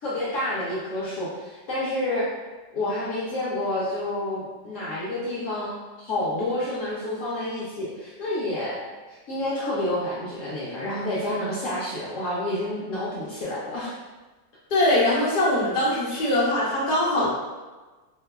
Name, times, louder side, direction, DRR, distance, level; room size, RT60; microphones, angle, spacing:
voice 1, 0.0-2.3 2.7-13.9, left 1 dB, 65° left, -8 dB, 0.8 m, -29 dB
voice 2, 14.7-17.3, left 1 dB, 45° left, -7 dB, 0.5 m, -22 dB
2.7 x 2.2 x 2.2 m, 1.2 s
omnidirectional pair, 1.7 m